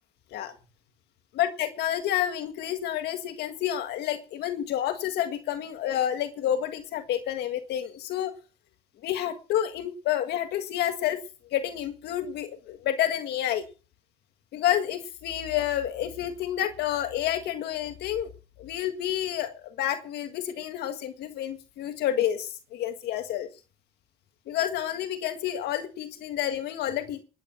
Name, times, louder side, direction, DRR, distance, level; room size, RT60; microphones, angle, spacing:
voice 1, 1.3-8.3 9.0-11.2 11.5-13.7 14.5-18.3 18.6-23.5 24.5-27.2, left 11 dB, 75° left, 8 dB, 1.8 m, -29 dB
20.0 x 8.6 x 5.8 m, 0.37 s
cardioid pair, 110°, 17 cm